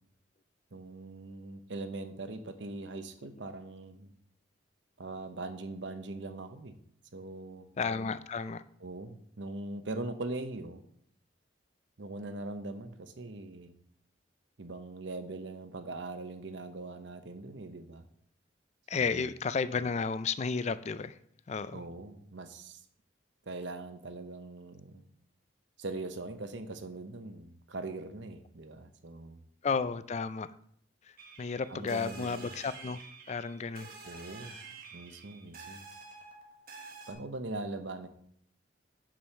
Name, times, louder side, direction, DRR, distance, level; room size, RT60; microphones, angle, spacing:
voice 1, 0.7-4.1 5.0-6.7 7.1-7.7 8.8-10.8 12.0-13.8 14.6-18.1 18.9-19.2 21.7-22.8 23.5-25.0 25.8-29.4 31.7-32.5 34.0-34.5 34.9-35.8 37.1-38.1, right 2 dB, 70° right, 9 dB, 0.9 m, -41 dB
voice 2, 7.8-8.6 18.9-21.1 21.5-21.8 29.6-30.5 31.0-33.0 33.3-33.9, left 5 dB, 35° left, 14 dB, 0.4 m, -33 dB
sound 1, 31.2-37.1, right 4 dB, 50° right, 1.4 m, -49 dB
6.3 x 6.2 x 5.6 m, 0.66 s
head